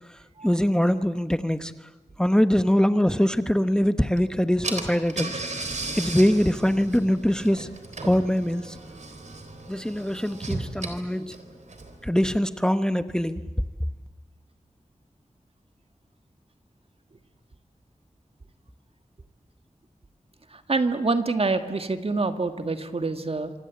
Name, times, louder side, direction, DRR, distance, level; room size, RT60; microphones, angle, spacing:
voice 1, 0.4-1.7 2.2-5.4 5.9-7.7 8.0-8.7 9.7-11.4 12.0-13.4, equal, 5° left, 11 dB, 0.9 m, -23 dB
Car / Engine, 4.2-4.3 4.6-12.1, right 2 dB, 70° right, 3.7 m, -36 dB
voice 2, 20.5-23.5, right 3 dB, 50° right, 8 dB, 1.9 m, -26 dB
26.0 x 26.0 x 8.4 m, 1.2 s
wide cardioid pair, 85°, 13 cm